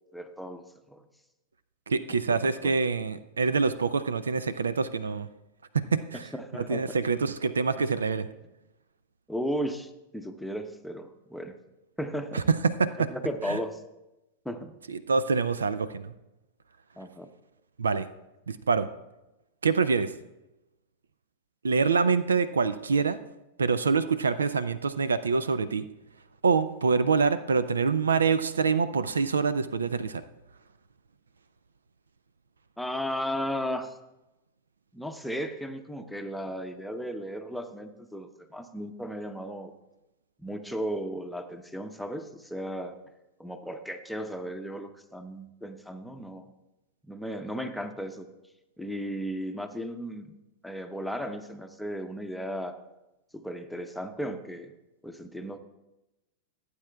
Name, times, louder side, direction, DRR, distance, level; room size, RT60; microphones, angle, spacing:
voice 1, 0.1-1.0 2.3-2.7 6.3-7.0 9.3-11.6 12.0-12.4 13.0-13.8 14.4-14.8 17.0-17.3 32.8-33.9 34.9-39.7 40.4-43.0 43.4-46.5 47.0-48.3 48.8-50.4 50.6-52.8 53.3-54.7 55.0-55.6, equal, ahead, 7 dB, 0.8 m, -35 dB
voice 2, 1.9-5.3 5.7-6.2 6.5-8.3 12.3-13.1 13.5-13.6 14.9-16.1 17.8-18.1 18.5-18.9 19.6-20.1 21.6-23.2 23.6-25.9 26.4-30.2, right 5 dB, 80° right, 14 dB, 0.4 m, -25 dB
16.0 x 8.2 x 2.3 m, 0.96 s
figure-of-eight pair, 95°, 0 cm